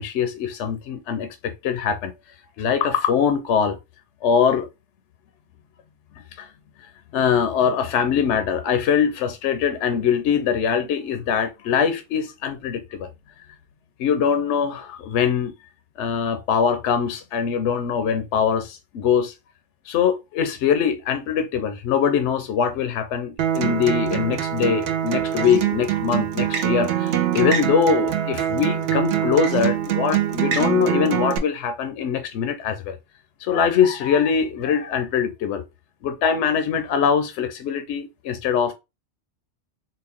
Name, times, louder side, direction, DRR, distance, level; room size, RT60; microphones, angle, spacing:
voice 1, 0.0-2.1 2.6-3.8 4.2-4.7 6.2-6.5 7.1-13.1 14.0-15.5 16.0-19.3 19.8-33.0 33.4-35.6 36.0-38.7, left 7 dB, 80° left, 0.9 m, -22 dB
Acoustic guitar, 23.4-31.4, right 10 dB, 75° right, 0.9 m, -23 dB
3.9 x 2.2 x 3.5 m
omnidirectional pair, 1.2 m